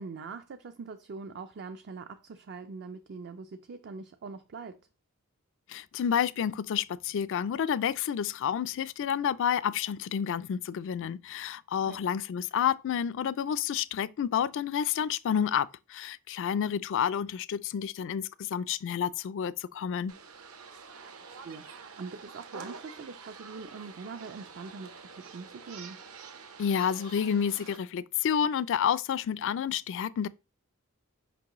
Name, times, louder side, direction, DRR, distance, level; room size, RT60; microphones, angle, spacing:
voice 1, 0.0-4.8 11.8-12.0 21.0-26.0, right 4 dB, 50° right, 0.4 m, -43 dB
voice 2, 5.7-20.1 26.6-30.3, left 8 dB, 60° left, 0.3 m, -29 dB
sound 1, 20.1-27.8, right 5 dB, 75° right, 1.0 m, -47 dB
6.0 x 5.2 x 3.0 m
head